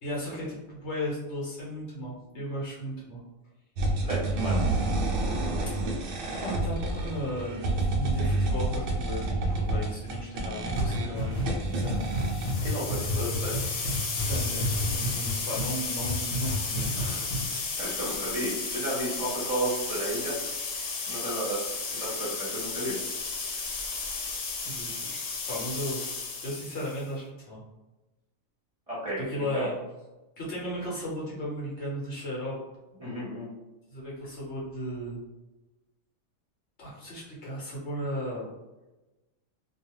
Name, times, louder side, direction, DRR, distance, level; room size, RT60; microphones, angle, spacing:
voice 1, 0.0-3.2 6.4-12.1 14.3-17.8 24.6-25.2 25.5-26.0 26.4-27.6 29.2-29.8 30.4-32.6 33.9-35.2 36.8-38.5, equal, 55° left, -6 dB, 1.1 m, -35 dB
sound 1, 3.8-12.5, right 2 dB, 70° right, 0.5 m, -29 dB
voice 2, 4.0-4.7 12.6-13.5 17.8-20.4 21.1-21.6 21.9-23.0 28.9-29.7 33.0-33.5, right 1 dB, 30° right, -9 dB, 0.8 m, -32 dB
sound 2, 10.7-15.7 16.0-17.0 17.3-17.4, equal, 40° left, 0.5 m, -31 dB
sound 3, 12.1-27.1, left 4 dB, 90° left, 1.0 m, -34 dB
2.3 x 2.3 x 3.0 m, 1.1 s
omnidirectional pair, 1.4 m